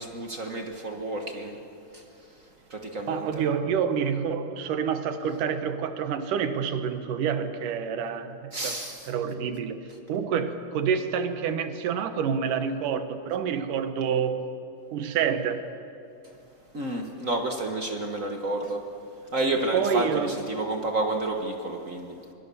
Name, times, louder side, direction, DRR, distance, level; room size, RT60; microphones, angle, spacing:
voice 1, 0.0-1.6 1.9-2.0 2.7-3.3 8.5-9.1 16.7-18.8 19.3-22.1, right 2 dB, 60° right, 3 dB, 0.8 m, -30 dB
voice 2, 3.1-8.7 9.1-9.8 10.1-14.4 14.9-15.6 19.7-20.4, right 7 dB, 75° right, 9 dB, 2.7 m, -28 dB
25.5 x 22.5 x 7.0 m, 2.7 s
omnidirectional pair, 3.9 m